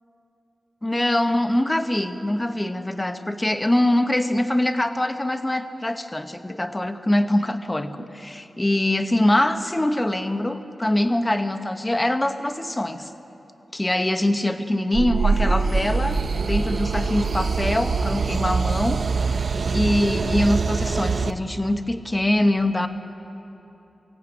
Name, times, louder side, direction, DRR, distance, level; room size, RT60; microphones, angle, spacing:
voice 1, 0.8-13.1 13.7-19.0 19.7-22.9, left 1 dB, 15° left, 8 dB, 1.0 m, -23 dB
sound 1, 14.9-21.3, right 4 dB, 55° right, 0.7 m, -23 dB
22.5 x 16.5 x 9.7 m, 3.0 s
wide cardioid pair, 145°, 0 cm